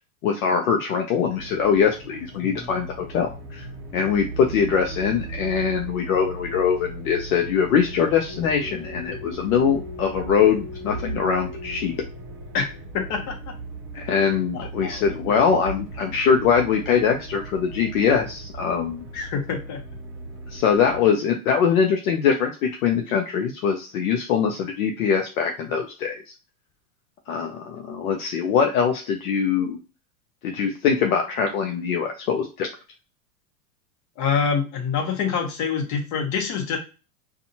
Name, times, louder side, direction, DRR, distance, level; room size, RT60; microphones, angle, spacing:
voice 1, 0.2-3.6 3.9-11.9 13.9-19.0 20.5-22.5 22.8-26.2 27.3-29.8 30.4-32.7, left 6 dB, 65° left, 3 dB, 0.7 m, -22 dB
sound 1, 1.2-21.0, right 2 dB, 25° right, 0.8 m, -37 dB
voice 2, 12.9-13.5 13.9-14.0 14.5-15.6 19.1-19.8 34.2-36.8, left 6 dB, 40° left, 2 dB, 1.0 m, -26 dB
2.5 x 2.5 x 2.7 m, 0.33 s
hypercardioid pair, 110°, 45 cm